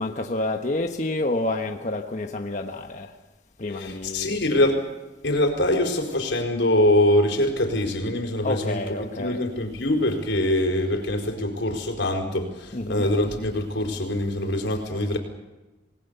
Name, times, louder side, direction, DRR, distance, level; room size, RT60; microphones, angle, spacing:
voice 1, 0.0-3.1 3.6-4.4 8.4-9.4 12.7-13.1, left 2 dB, 40° left, 1.3 m, -29 dB
voice 2, 3.7-4.8 5.2-15.2, left 1 dB, 85° left, 4.8 m, -24 dB
28.0 x 19.5 x 7.0 m
head